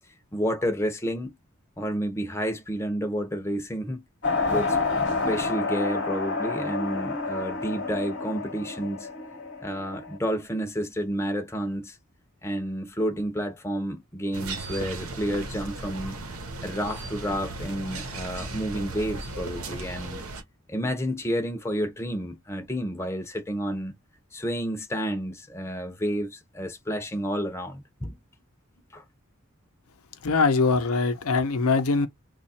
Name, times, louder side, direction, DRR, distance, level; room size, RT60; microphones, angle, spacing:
voice 1, 0.3-1.4 1.8-4.0 4.5-4.8 5.3-9.1 9.6-12.0 12.4-16.2 16.6-20.2 20.7-23.9 24.3-28.2 28.9-29.0, equal, 10° left, 0.7 m, -30 dB
sound 1, 4.2-10.2, left 3 dB, 55° left, 1.0 m, -29 dB
sound 2, 14.3-20.4, right 2 dB, 85° right, 0.9 m, -36 dB
voice 2, 30.2-32.1, left 4 dB, 85° left, 0.7 m, -22 dB
3.0 x 2.4 x 4.1 m
head